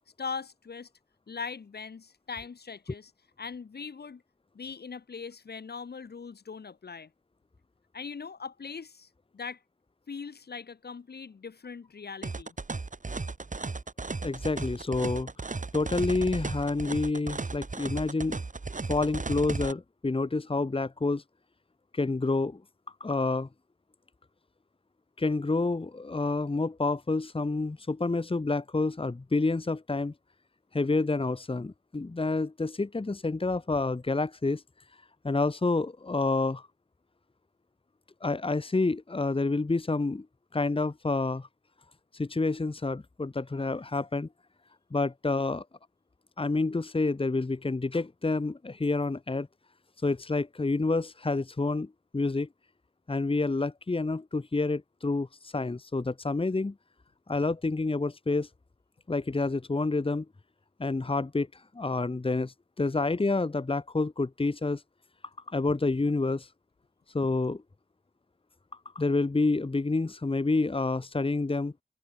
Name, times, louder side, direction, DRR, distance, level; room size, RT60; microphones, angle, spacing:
voice 1, 0.2-0.9 1.3-3.1 3.4-4.2 4.5-7.1 7.9-9.1 9.3-9.6 10.1-12.5, left 5 dB, 65° left, 1.6 m, -40 dB
sound 1, 12.2-19.7, right 3 dB, 45° right, 2.4 m, -35 dB
voice 2, 14.2-15.3 15.7-18.4 18.9-21.2 21.9-22.6 23.0-23.5 25.2-30.1 30.7-34.6 35.2-36.7 38.2-40.3 40.5-41.5 42.1-44.3 44.9-45.6 46.4-49.5 50.0-52.5 53.1-56.7 57.3-58.5 59.1-60.2 60.8-61.5 61.7-64.8 65.5-66.5 67.1-67.6 68.9-71.7, left 3 dB, 30° left, 1.3 m, -28 dB
open air
cardioid pair, 40°, 18 cm